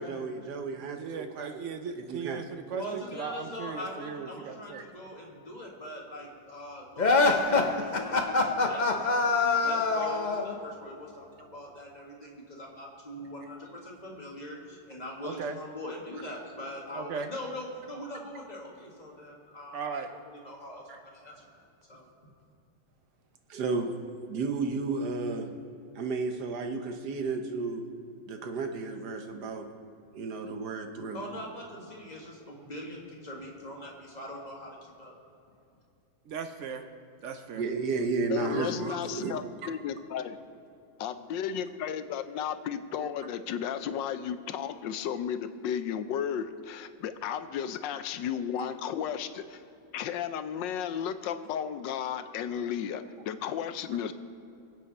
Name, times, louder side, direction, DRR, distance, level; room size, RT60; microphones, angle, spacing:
voice 1, 0.0-1.5 1.9-2.4 4.7-4.8 7.5-7.7 20.9-21.0 23.5-23.9 24.3-25.5 25.9-27.8 28.3-29.7 30.1-31.2 37.5-39.5 48.6-48.7, right 4 dB, 60° right, 5 dB, 1.5 m, -33 dB
voice 2, 1.0-4.8 15.2-15.6 16.9-17.3 19.7-20.1 36.3-36.9 37.2-37.6, right 6 dB, 80° right, 8 dB, 0.6 m, -37 dB
voice 3, 2.7-9.4 9.6-21.6 21.9-22.1 31.1-35.2, left 1 dB, 20° left, -2 dB, 2.1 m, -42 dB
sound 1, 7.0-10.5, left 3 dB, 40° left, 0.6 m, -24 dB
voice 4, 38.3-40.4 41.0-49.6 49.9-54.1, left 8 dB, 75° left, 11 dB, 1.3 m, -34 dB
22.5 x 8.3 x 4.2 m, 2.6 s
omnidirectional pair, 2.1 m